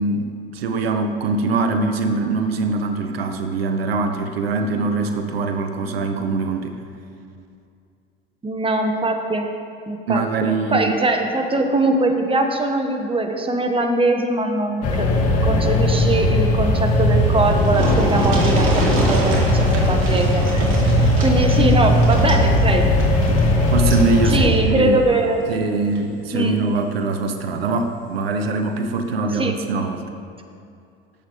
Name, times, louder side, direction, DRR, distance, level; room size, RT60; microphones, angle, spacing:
voice 1, 0.0-6.8 10.1-10.9 23.7-25.0 25.5-30.0, right 3 dB, 90° right, 6 dB, 0.8 m, -23 dB
voice 2, 8.4-9.5 9.9-15.1 15.4-20.7 21.0-22.9 24.2-25.4 26.3-26.6 29.4-29.5, right 2 dB, 20° right, 4 dB, 1.5 m, -22 dB
sound 1, 14.8-24.5, left 1 dB, 55° left, 2.2 m, -18 dB
sound 2, 17.0-17.1 17.3-24.1 25.4-25.5 25.9-26.0, right 2 dB, 45° right, 3.0 m, -27 dB
18.5 x 8.1 x 3.2 m, 2.4 s
hypercardioid pair, 75°, 29 cm